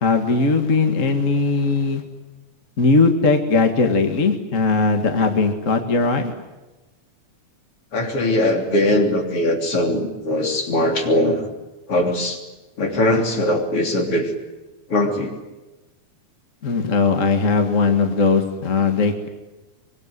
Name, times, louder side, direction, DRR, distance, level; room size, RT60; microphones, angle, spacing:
voice 1, 0.0-2.0 2.8-6.3 16.6-19.3, left 4 dB, 30° left, 5 dB, 1.7 m, -19 dB
voice 2, 7.9-11.4 11.9-12.4 12.8-14.3 14.9-15.3, left 1 dB, 50° left, 2 dB, 4.2 m, -20 dB
24.0 x 23.5 x 9.7 m, 1.1 s
omnidirectional pair, 3.4 m